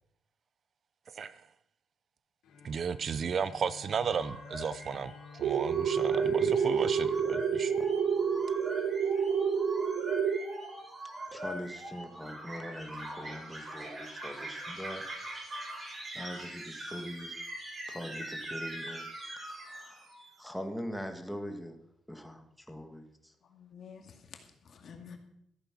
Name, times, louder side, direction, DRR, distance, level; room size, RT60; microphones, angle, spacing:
Bowed string instrument, 2.4-8.4, left 6 dB, 85° left, 3.3 m, -52 dB
voice 1, 2.6-7.7, right 6 dB, 50° right, 0.6 m, -34 dB
sound 1, 3.8-20.3, right 1 dB, 30° right, 5.3 m, -42 dB
sound 2, 5.4-10.4, right 7 dB, 75° right, 0.9 m, -28 dB
voice 2, 11.3-15.0 15.5-15.7 16.1-17.5 17.9-19.1 19.4-20.1 20.4-21.8 22.1-23.3, equal, ahead, 1.9 m, -42 dB
voice 3, 23.5-25.2, left 6 dB, 55° left, 2.2 m, -50 dB
14.0 x 8.9 x 6.1 m
cardioid pair, 90°, 0 cm